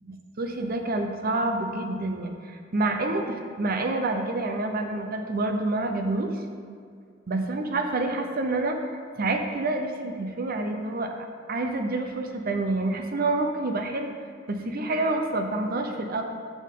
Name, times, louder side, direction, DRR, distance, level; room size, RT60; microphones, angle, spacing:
voice 1, 0.1-6.3 7.3-11.1 11.5-14.1 14.5-16.2, right 2 dB, 50° right, 4 dB, 0.7 m, -28 dB
11.0 x 6.3 x 3.8 m, 2.2 s
head